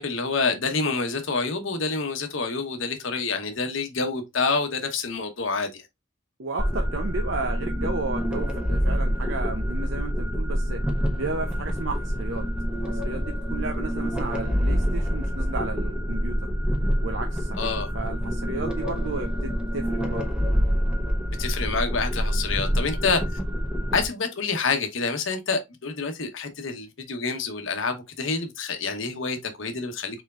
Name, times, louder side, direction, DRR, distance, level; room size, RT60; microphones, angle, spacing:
voice 1, 0.0-5.8 17.6-17.9 21.4-23.2 23.9-30.2, left 4 dB, 65° left, 1.1 m, -27 dB
voice 2, 6.4-10.8 11.2-12.5 12.8-16.5 17.0-20.3, right 3 dB, 65° right, 0.7 m, -33 dB
sound 1, 6.6-24.0, equal, 5° right, 1.1 m, -26 dB
4.5 x 4.4 x 2.4 m
head